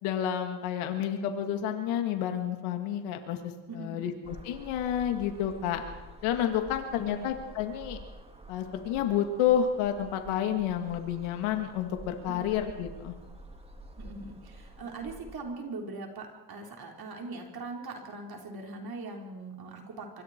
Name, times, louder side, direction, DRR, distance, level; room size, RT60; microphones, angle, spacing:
voice 1, 0.0-5.8 6.2-8.0 8.5-13.2, left 9 dB, 85° left, 5 dB, 2.3 m, -30 dB
voice 2, 3.7-4.2 6.9-7.3 12.3-12.5 14.0-20.2, right 3 dB, 45° right, 1 dB, 4.7 m, -41 dB
sound 1, 4.2-15.4, right 1 dB, 10° right, 2.9 m, -49 dB
25.0 x 23.5 x 4.6 m, 1.1 s
cardioid pair, 105°, 48 cm